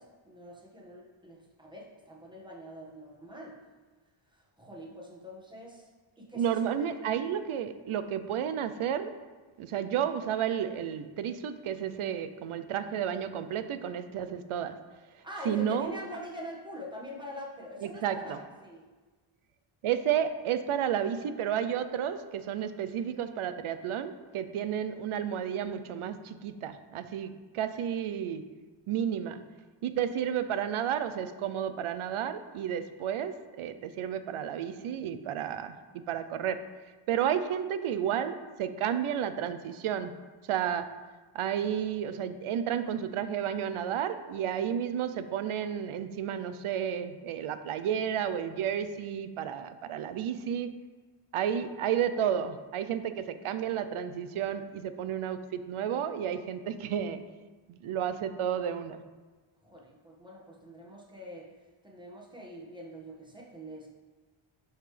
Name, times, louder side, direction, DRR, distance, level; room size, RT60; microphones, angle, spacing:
voice 1, 0.0-3.6 4.3-5.9 6.2-7.1 15.2-18.8 59.6-61.5 61.8-63.9, equal, 10° right, -3 dB, 1.6 m, -44 dB
voice 2, 6.3-9.1 9.6-14.7 15.5-15.9 17.8-18.4 19.8-28.4 28.9-29.4 29.8-36.6 37.1-40.1 40.5-40.9 41.3-50.7 51.3-57.2 57.7-59.0, right 9 dB, 85° right, 11 dB, 0.7 m, -32 dB
10.5 x 5.8 x 3.4 m, 1.3 s
wide cardioid pair, 140°, 49 cm